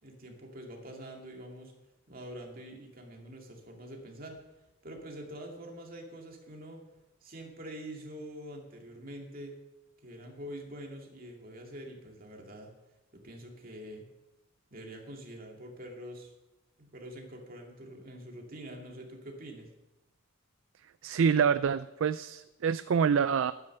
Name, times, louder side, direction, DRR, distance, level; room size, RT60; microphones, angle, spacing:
voice 1, 0.0-1.7 2.1-4.4 4.8-6.8 7.2-9.6 10.0-12.7 13.1-14.1 14.7-16.3 16.8-19.7, equal, 45° right, 1 dB, 2.4 m, -45 dB
voice 2, 21.0-23.5, right 6 dB, 65° right, 14 dB, 0.4 m, -26 dB
12.0 x 9.9 x 6.7 m, 1.0 s
head